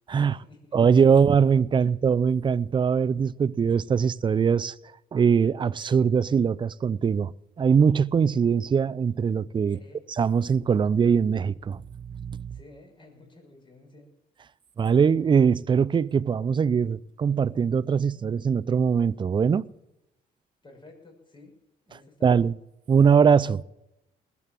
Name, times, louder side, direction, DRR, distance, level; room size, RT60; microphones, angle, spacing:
voice 1, 0.1-1.0 1.7-1.9 9.6-10.0 12.5-14.1 20.6-21.5 21.8-22.4, left 2 dB, 30° left, 6.4 m, -52 dB
voice 2, 0.7-4.7 5.1-7.3 7.6-9.8 10.2-11.8 12.1-12.6 14.8-19.7 22.2-22.5 22.9-23.6, right 6 dB, 30° right, 0.5 m, -22 dB
20.0 x 8.4 x 7.6 m
cardioid pair, 120°, 16 cm